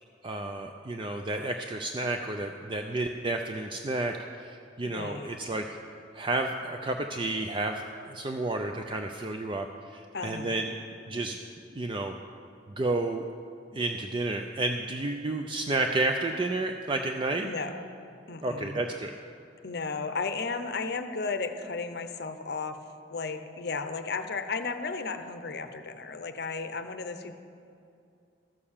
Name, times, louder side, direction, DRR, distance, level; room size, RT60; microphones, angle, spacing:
voice 1, 0.2-5.6 6.1-10.7 11.1-11.4 11.7-12.1 12.8-13.3 13.7-17.5 18.4-19.1, right 2 dB, 25° right, 4 dB, 0.4 m, -31 dB
voice 2, 4.8-5.3 10.1-10.7 17.4-17.8 18.3-18.8 19.6-22.8 23.1-27.4, left 4 dB, 55° left, 8 dB, 0.7 m, -34 dB
14.0 x 6.7 x 7.2 m, 2.5 s
head